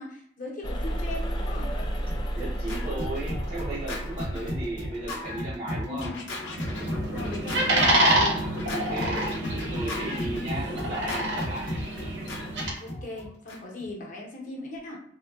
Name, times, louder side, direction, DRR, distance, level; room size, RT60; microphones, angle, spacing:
voice 1, 0.0-1.7 5.8-6.2 7.0-8.4 12.8-15.0, left 2 dB, 45° left, -1 dB, 0.8 m, -38 dB
sound 1, 0.6-5.1, equal, 25° left, 0.3 m, -32 dB
Scratching (performance technique), 1.8-13.9, left 1 dB, 90° left, 0.7 m, -35 dB
voice 2, 2.4-6.2 8.6-11.7, right 2 dB, 35° right, -6 dB, 0.5 m, -35 dB
sound 2, 6.4-12.7, right 1 dB, 75° right, 0.8 m, -27 dB
3.7 x 2.2 x 2.2 m, 0.68 s
head